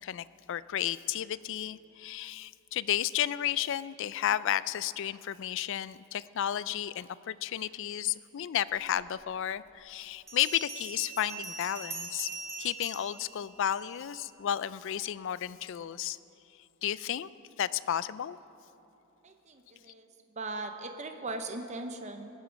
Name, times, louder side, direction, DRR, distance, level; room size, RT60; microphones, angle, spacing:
voice 1, 0.0-12.3 12.6-16.2 16.8-17.3 17.6-18.4, left 11 dB, 60° left, 17 dB, 0.3 m, -32 dB
Bell, 9.1-9.2 10.3-14.2, right 3 dB, 15° right, 2.1 m, -42 dB
voice 2, 19.2-20.1 20.4-22.3, right 2 dB, 30° right, 6 dB, 0.8 m, -39 dB
19.0 x 10.5 x 5.1 m, 2.8 s
head